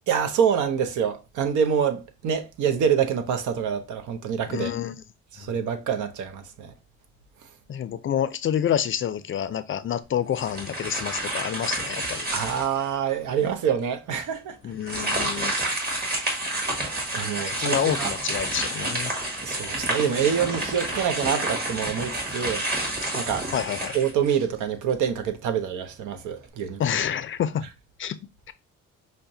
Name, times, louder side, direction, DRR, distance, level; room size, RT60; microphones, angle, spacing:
voice 1, 0.1-4.7 5.3-6.7 12.3-14.6 15.9-16.0 17.1-18.1 19.4-22.7 23.1-23.5 23.9-26.8, right 7 dB, 80° right, 0.7 m, -26 dB
voice 2, 4.5-5.0 7.7-12.3 14.6-15.5 17.2-19.1 23.5-24.0 26.8-27.7 28.0-28.2, left 9 dB, 45° left, 0.4 m, -28 dB
sound 1, 10.3-12.9 13.4-13.5 14.8-24.6, right 1 dB, 30° right, 1.6 m, -29 dB
5.6 x 2.1 x 2.6 m
cardioid pair, 90°, 30 cm